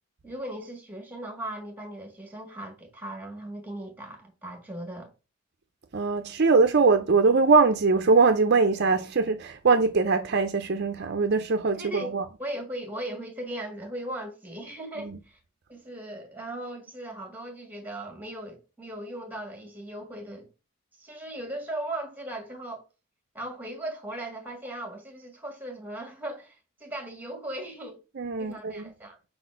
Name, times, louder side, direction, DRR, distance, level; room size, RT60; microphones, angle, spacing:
voice 1, 0.2-5.1 11.7-12.1 12.4-15.4 15.7-20.5 21.0-22.8 23.3-28.0 28.4-29.2, right 1 dB, 10° right, 1.6 m, -38 dB
voice 2, 5.9-12.2 15.0-15.2 28.2-28.9, right 4 dB, 50° right, 0.6 m, -22 dB
5.0 x 4.1 x 5.7 m
head